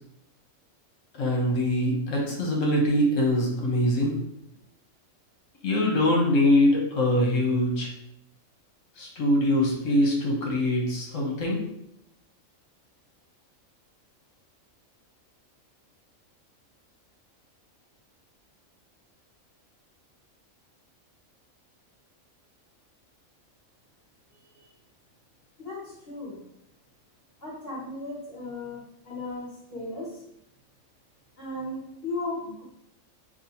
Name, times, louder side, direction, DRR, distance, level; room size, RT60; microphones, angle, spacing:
voice 1, 1.2-4.1 5.6-7.9 9.0-11.6, left 1 dB, 70° left, -1 dB, 1.2 m, -23 dB
voice 2, 24.3-24.7 25.6-26.4 27.4-30.2 31.4-32.6, left 2 dB, 45° left, -6 dB, 1.6 m, -36 dB
2.7 x 2.6 x 4.1 m, 0.74 s
omnidirectional pair, 1.4 m